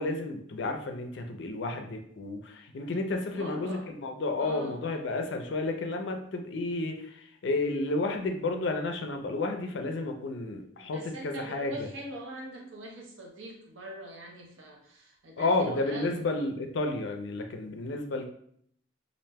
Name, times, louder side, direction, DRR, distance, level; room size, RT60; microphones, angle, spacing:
voice 1, 0.0-11.7 15.4-18.3, left 2 dB, 60° left, 5 dB, 0.4 m, -31 dB
voice 2, 3.2-3.9 4.4-4.9 10.7-16.2, right 1 dB, 75° right, 1 dB, 0.6 m, -42 dB
2.5 x 2.1 x 3.3 m, 0.66 s
head